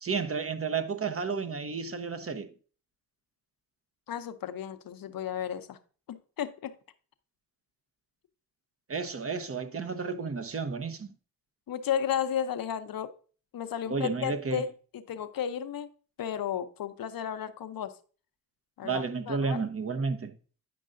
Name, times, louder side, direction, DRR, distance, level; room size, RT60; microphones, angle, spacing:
voice 1, 0.0-2.5 8.9-11.1 13.9-14.6 18.8-20.3, right 5 dB, 35° right, 0.9 m, -32 dB
voice 2, 4.1-5.8 6.1-6.7 11.7-13.1 13.5-14.7 14.9-15.9 16.2-17.9 18.8-19.7, left 9 dB, 55° left, 0.8 m, -33 dB
9.4 x 5.3 x 2.5 m
supercardioid pair, 45°, 41 cm